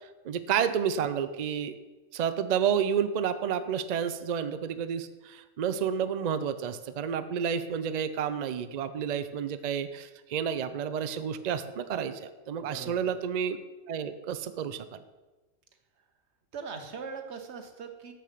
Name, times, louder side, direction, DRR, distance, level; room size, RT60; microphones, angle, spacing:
voice 1, 0.2-1.7 2.1-13.6 13.9-15.0, right 8 dB, 75° right, 11 dB, 0.3 m, -30 dB
voice 2, 12.5-13.1 16.5-18.1, right 5 dB, 55° right, 6 dB, 1.2 m, -41 dB
7.0 x 6.8 x 6.5 m, 1.2 s
omnidirectional pair, 1.4 m